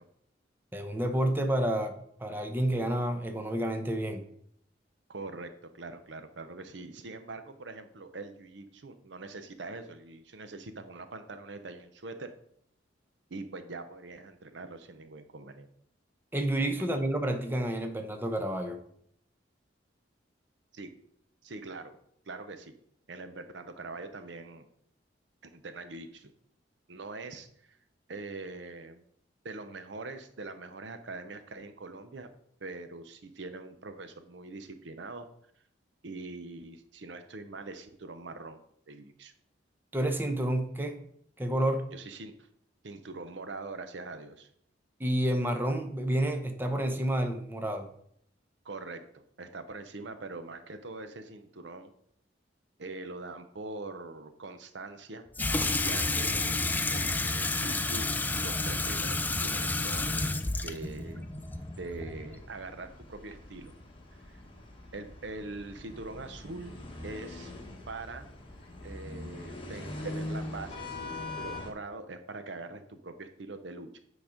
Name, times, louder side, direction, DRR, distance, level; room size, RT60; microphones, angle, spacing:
voice 1, 0.7-4.2 16.3-18.8 39.9-41.0 41.4-41.8 45.0-47.9, right 1 dB, 10° right, 5 dB, 0.7 m, -29 dB
voice 2, 5.1-12.3 13.3-15.7 20.7-20.9 21.4-22.0 22.3-22.7 23.1-24.7 25.5-26.3 26.9-27.8 28.1-29.0 29.4-32.3 32.6-35.3 36.0-39.3 41.9-42.5 42.8-44.5 48.6-51.9 52.8-55.3 55.8-58.1 58.4-60.3 60.6-61.2 61.8-63.7 64.3-64.4 64.9-66.8 67.0-67.5 67.9-68.3 68.8-74.0, right 3 dB, 70° right, 9 dB, 0.7 m, -43 dB
Water tap faucet / Sink (filling or washing), 55.4-62.4, left 2 dB, 10° left, 0.4 m, -30 dB
sound 1, 59.1-71.7, left 2 dB, 30° left, 1.3 m, -43 dB
8.7 x 4.0 x 5.1 m, 0.68 s
head